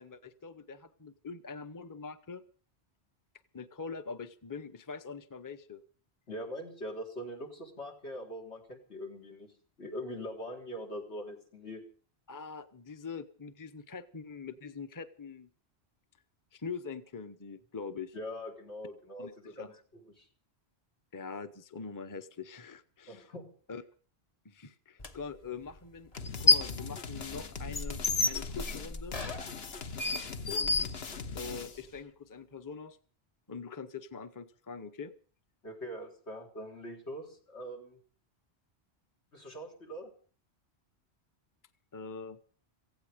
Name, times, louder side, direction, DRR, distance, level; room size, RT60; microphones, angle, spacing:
voice 1, 0.0-2.4 3.5-5.8 12.3-15.5 16.5-18.1 19.2-19.7 21.1-23.3 23.7-23.8 24.4-26.1 26.4-28.0 28.2-29.2 30.5-30.8 31.3-33.0 33.5-35.1 41.9-42.6, left 5 dB, 20° left, 11 dB, 0.8 m, -43 dB
voice 2, 6.3-9.5 9.8-11.8 18.1-19.7 20.2-20.3 23.1-23.5 35.6-38.0 39.3-40.1, equal, 80° left, 1 dB, 4.2 m, -42 dB
sound 1, 25.0-25.1 26.1-26.8 27.2-31.5, left 3 dB, 35° left, 1.2 m, -30 dB
sound 2, 26.2-31.9, left 5 dB, 65° left, 1.4 m, -41 dB
17.0 x 16.0 x 5.1 m, 0.42 s
omnidirectional pair, 1.1 m